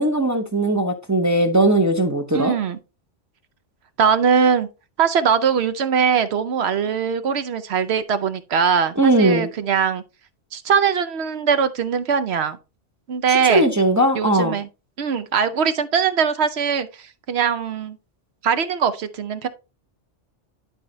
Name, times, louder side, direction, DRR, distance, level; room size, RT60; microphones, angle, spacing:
voice 1, 0.0-2.5 9.0-9.5 13.5-14.6, right 1 dB, 15° right, 0.7 m, -18 dB
voice 2, 2.3-2.8 4.0-4.7 5.0-10.0 10.5-12.6 13.1-13.7 14.1-14.7 15.0-18.0 18.4-19.5, right 7 dB, 65° right, 0.9 m, -21 dB
11.5 x 4.3 x 3.1 m
omnidirectional pair, 1.2 m